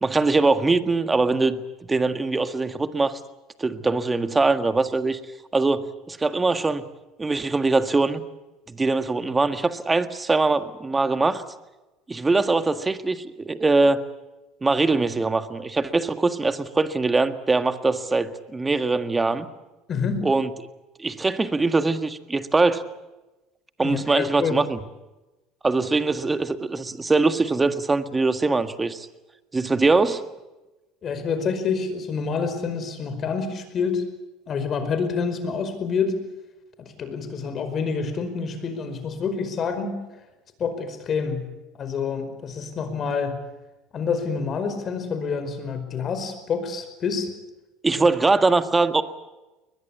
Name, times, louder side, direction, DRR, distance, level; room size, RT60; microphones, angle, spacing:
voice 1, 0.0-3.2 3.6-5.2 5.5-6.8 7.2-8.2 8.7-11.4 12.1-14.0 14.6-19.5 20.2-20.5 21.0-22.8 23.8-24.8 25.6-29.1 29.5-30.2 47.8-49.0, right 3 dB, 15° right, 10 dB, 1.7 m, -22 dB
voice 2, 19.9-20.2 23.8-24.6 31.0-34.0 34.5-36.2 36.8-39.9 40.6-41.5 41.8-43.4 43.9-47.3 48.0-48.1, left 5 dB, 40° left, 9 dB, 5.0 m, -27 dB
21.5 x 21.0 x 8.4 m, 1.1 s
supercardioid pair, 90°, 0 cm